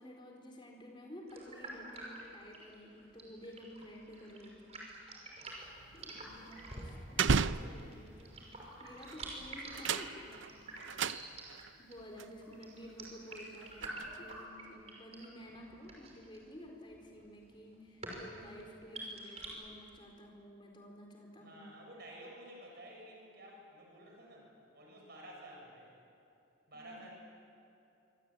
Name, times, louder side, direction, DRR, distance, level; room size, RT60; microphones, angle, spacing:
voice 1, 0.0-4.8 5.9-8.4 8.8-10.5 11.8-21.7 26.7-27.0, equal, 25° left, 1 dB, 4.5 m, -52 dB
sound 1, 1.3-19.5, right 2 dB, 30° right, 5.9 m, -48 dB
sound 2, 5.5-8.2 9.0-9.3 9.6-11.7 12.2-12.3 12.9-14.4, right 5 dB, 70° right, 0.6 m, -35 dB
voice 2, 5.9-7.8 11.0-11.5 21.4-25.9 26.7-27.1, right 1 dB, 50° right, -1 dB, 7.3 m, -53 dB
27.0 x 24.5 x 8.9 m, 2.8 s
head